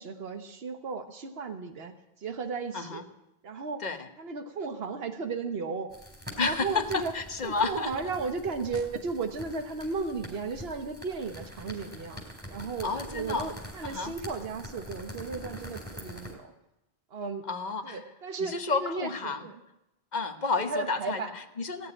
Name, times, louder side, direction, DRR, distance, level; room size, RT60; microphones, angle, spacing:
voice 1, 0.0-3.0 3.4-3.8 4.2-5.9 6.4-7.1 7.4-12.2 12.5-16.5 17.1-17.4 17.8-19.6 20.7-21.3 21.8-21.9, right 4 dB, 75° right, 7 dB, 1.4 m, -35 dB
sound 1, 5.9-16.3, equal, 10° right, 3.7 m, -44 dB
voice 2, 6.4-7.9 12.8-13.5 13.8-14.1 17.5-18.0 18.4-19.5 20.1-21.9, left 4 dB, 45° left, 8 dB, 1.1 m, -31 dB
17.0 x 6.9 x 9.9 m, 0.89 s
omnidirectional pair, 1.0 m